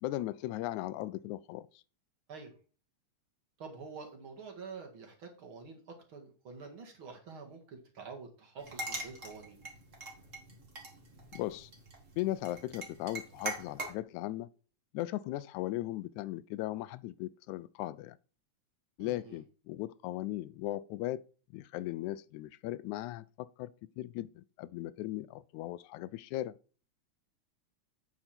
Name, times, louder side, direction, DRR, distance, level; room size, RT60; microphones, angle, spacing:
voice 1, 0.0-1.7 11.3-11.7 12.2-14.5 14.9-18.2 19.0-21.2 21.5-23.7 24.0-26.5, left 15 dB, 90° left, 2.0 m, -37 dB
voice 2, 3.6-5.8 6.1-9.6 19.0-19.4, right 5 dB, 50° right, 2.5 m, -47 dB
sound 1, 8.6-13.9, right 2 dB, 30° right, 2.1 m, -43 dB
8.7 x 6.7 x 4.4 m
omnidirectional pair, 3.3 m